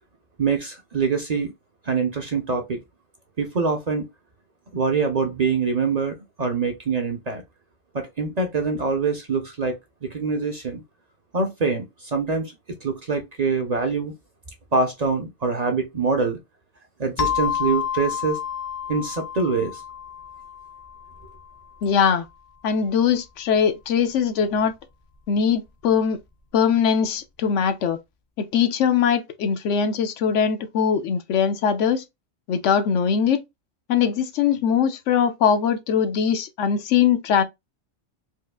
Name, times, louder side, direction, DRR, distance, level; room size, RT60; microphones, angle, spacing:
voice 1, 0.4-1.5 1.9-2.8 3.4-4.1 4.7-7.4 7.9-10.8 11.3-12.5 12.8-14.1 14.7-16.4 17.0-18.4 18.9-19.8, right 4 dB, 45° right, 0.6 m, -24 dB
sound 1, 17.2-21.6, left 8 dB, 45° left, 0.6 m, -29 dB
voice 2, 21.8-22.3 22.6-24.7 25.3-26.2 26.5-28.0 28.4-32.0 32.5-33.4 33.9-37.4, left 7 dB, 80° left, 1.0 m, -21 dB
4.6 x 2.4 x 2.3 m
omnidirectional pair, 1.2 m